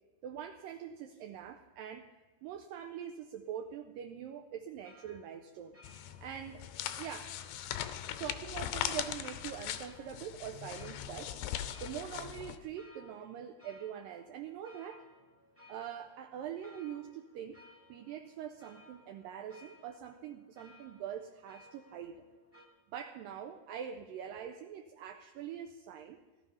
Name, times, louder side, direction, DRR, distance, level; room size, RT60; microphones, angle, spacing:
voice 1, 0.2-2.1 2.4-5.8 6.2-6.7 7.0-7.4 8.2-11.4 11.8-15.1 15.7-22.2 22.9-26.2, right 9 dB, 85° right, 6 dB, 2.0 m, -44 dB
sound 1, 4.8-22.7, left 1 dB, 5° right, 1.0 m, -61 dB
sound 2, 5.8-12.6, left 11 dB, 85° left, 2.7 m, -40 dB
17.0 x 12.5 x 5.6 m, 1.3 s
omnidirectional pair, 4.7 m